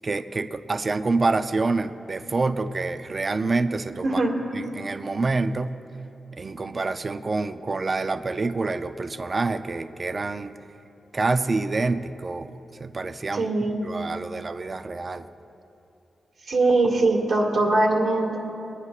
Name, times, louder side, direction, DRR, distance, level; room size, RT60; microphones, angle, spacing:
voice 1, 0.0-4.2 4.5-5.7 6.4-10.5 11.1-12.5 12.8-13.5 13.8-15.3, right 3 dB, 40° right, 10 dB, 0.4 m, -27 dB
voice 2, 13.3-13.8 16.5-18.4, right 2 dB, 80° right, -3 dB, 2.0 m, -21 dB
28.5 x 9.8 x 2.4 m, 2.8 s
cardioid pair, 90°, 0 cm